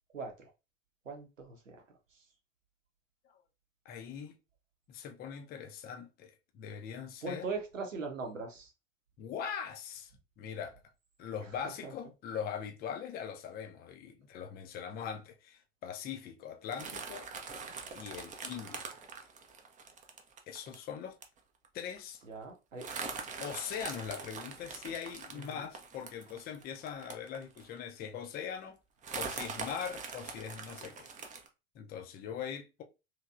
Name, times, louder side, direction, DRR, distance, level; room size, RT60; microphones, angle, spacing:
voice 1, 0.1-0.5 1.0-1.8 7.2-8.7 11.8-11.9 18.6-18.8 22.3-22.9 25.3-25.6, right 3 dB, 85° right, 0.9 m, -40 dB
voice 2, 3.9-4.3 4.9-7.5 9.2-10.1 10.4-10.8 11.2-17.3 17.9-18.8 20.5-21.2 21.7-22.2 23.4-28.8 29.1-31.1 31.7-32.8, left 7 dB, 25° left, 0.5 m, -41 dB
sound 1, 16.7-20.8 21.2-21.4 21.6-21.7 22.0-22.2 22.8-27.8 28.2-28.3 29.0-31.5, right 5 dB, 20° right, 0.6 m, -43 dB
3.2 x 2.8 x 2.4 m
figure-of-eight pair, 80°, 38 cm